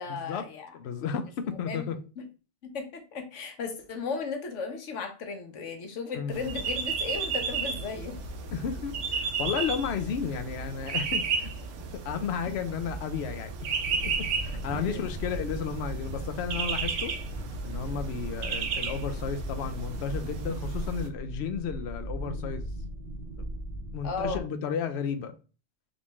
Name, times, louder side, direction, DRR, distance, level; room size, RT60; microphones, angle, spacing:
voice 1, 0.0-0.7 1.4-2.2 2.6-8.2 14.7-15.0 24.0-24.4, left 5 dB, 85° left, 1.2 m, -36 dB
voice 2, 0.7-2.0 6.1-6.5 8.5-11.5 11.9-13.5 14.0-17.1 17.6-22.7 23.9-25.3, left 7 dB, 70° left, 0.8 m, -33 dB
sound 1, 6.3-21.1, right 5 dB, 85° right, 1.0 m, -33 dB
sound 2, 13.8-24.4, equal, 50° right, 0.9 m, -38 dB
3.8 x 3.4 x 3.0 m
omnidirectional pair, 1.2 m